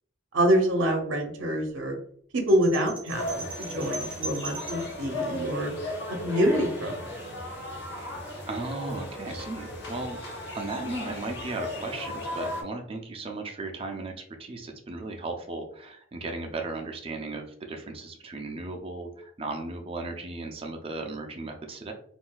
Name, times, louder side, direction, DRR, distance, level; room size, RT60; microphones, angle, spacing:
voice 1, 0.3-2.0 2.3-5.7 6.2-7.2, equal, 70° right, 2 dB, 0.7 m, -26 dB
sound 1, 2.5-4.9, right 2 dB, 5° right, 1.1 m, -39 dB
sound 2, 3.1-12.6, left 1 dB, 55° left, 0.8 m, -36 dB
voice 2, 8.0-10.2 10.5-21.9, right 2 dB, 25° right, 3 dB, 0.4 m, -36 dB
3.7 x 2.5 x 2.2 m, 0.63 s
head